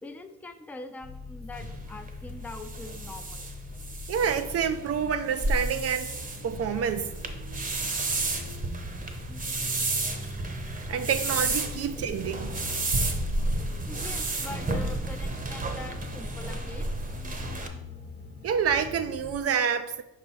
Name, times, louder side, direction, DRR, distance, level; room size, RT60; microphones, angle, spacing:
voice 1, 0.0-3.5 9.3-9.7 12.0-12.1 13.9-16.9, left 2 dB, 5° left, 0.5 m, -43 dB
sound 1, 1.0-19.4, left 3 dB, 30° left, 1.2 m, -42 dB
sound 2, 1.5-17.7, right 2 dB, 25° right, 0.8 m, -32 dB
voice 2, 4.1-6.1 6.4-7.1 10.7-12.5 18.4-20.0, right 7 dB, 55° right, 0.4 m, -28 dB
5.3 x 4.3 x 4.5 m
cardioid pair, 90°, 30 cm